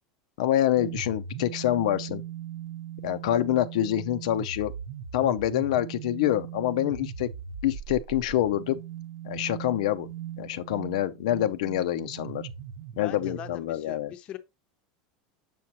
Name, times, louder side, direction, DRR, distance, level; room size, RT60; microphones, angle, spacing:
voice 1, 0.4-2.2 3.0-4.7 5.1-7.3 7.6-8.8 9.2-10.1 10.4-12.5 13.0-14.1, left 12 dB, 80° left, 0.5 m, -26 dB
sound 1, 0.7-13.6, right 9 dB, 65° right, 0.8 m, -39 dB
voice 2, 12.9-14.4, left 11 dB, 30° left, 0.6 m, -41 dB
6.9 x 5.9 x 2.8 m
supercardioid pair, 175°, 4 cm